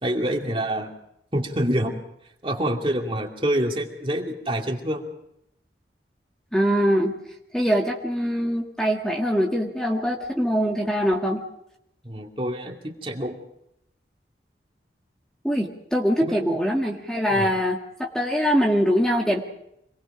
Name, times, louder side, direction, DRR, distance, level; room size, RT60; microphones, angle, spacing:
voice 1, 0.0-0.9 1.3-2.0 2.4-5.0 12.0-13.4 16.2-16.4 17.3-17.5, right 1 dB, 30° right, 1 dB, 2.5 m, -26 dB
voice 2, 6.5-7.1 7.5-11.4 15.4-19.4, equal, 5° left, 0 dB, 1.7 m, -23 dB
26.5 x 20.0 x 5.0 m, 0.77 s
head